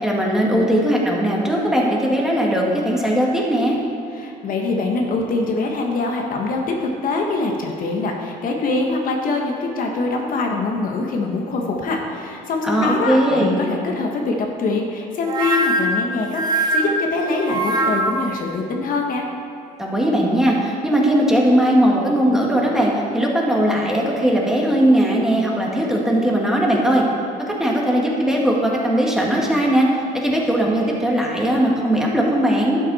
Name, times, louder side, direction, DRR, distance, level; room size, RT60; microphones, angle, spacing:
voice 1, 0.0-3.8 12.6-13.7 19.8-27.0 27.5-29.9 30.1-32.8, right 1 dB, 5° right, -3 dB, 1.8 m, -19 dB
voice 2, 4.1-19.2, left 3 dB, 55° left, 1 dB, 1.2 m, -23 dB
sound 1, 15.3-18.4, right 2 dB, 25° right, 0.8 m, -22 dB
12.0 x 8.4 x 4.1 m, 2.5 s
cardioid pair, 110°, 17 cm